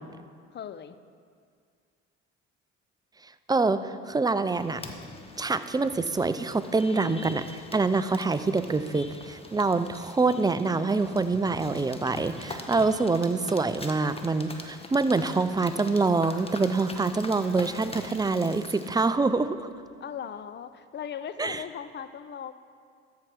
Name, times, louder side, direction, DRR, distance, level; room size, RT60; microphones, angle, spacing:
voice 1, 0.5-1.0 20.0-22.5, left 8 dB, 35° left, 13 dB, 0.5 m, -38 dB
voice 2, 3.5-4.8 5.4-19.6 21.4-21.6, right 3 dB, 15° right, 12 dB, 0.4 m, -25 dB
sound 1, 4.5-18.9, left 2 dB, 20° left, 1.1 m, -43 dB
13.5 x 4.8 x 5.9 m, 2.2 s
hypercardioid pair, 65°, 31 cm